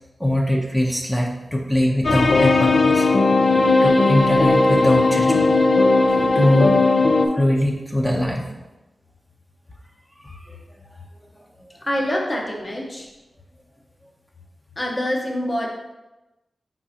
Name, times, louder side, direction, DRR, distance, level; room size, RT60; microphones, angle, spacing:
voice 1, 0.2-3.1 3.8-5.6 6.1-6.8 7.3-8.4 10.2-10.6 11.7-11.8, left 1 dB, 15° left, -1 dB, 0.7 m, -22 dB
sound 1, 2.0-7.3, left 3 dB, 60° left, 0.4 m, -17 dB
voice 2, 11.8-13.1 14.8-15.7, equal, 40° left, -1 dB, 1.1 m, -25 dB
4.6 x 3.7 x 2.9 m, 1.0 s
cardioid pair, 45°, 0 cm